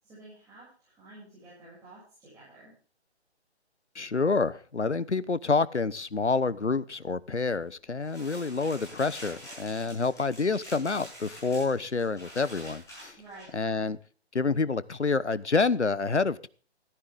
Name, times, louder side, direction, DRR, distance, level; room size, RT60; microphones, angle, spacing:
voice 1, 0.0-2.7 13.2-13.5, right 2 dB, 10° right, -10 dB, 7.5 m, -51 dB
voice 2, 3.9-13.2 13.5-14.0 14.3-16.5, left 4 dB, 90° left, 18 dB, 1.0 m, -28 dB
sound 1, 8.0-13.5, equal, 10° left, 7.1 m, -46 dB
14.5 x 14.0 x 3.7 m, 0.41 s
figure-of-eight pair, 140°, 33 cm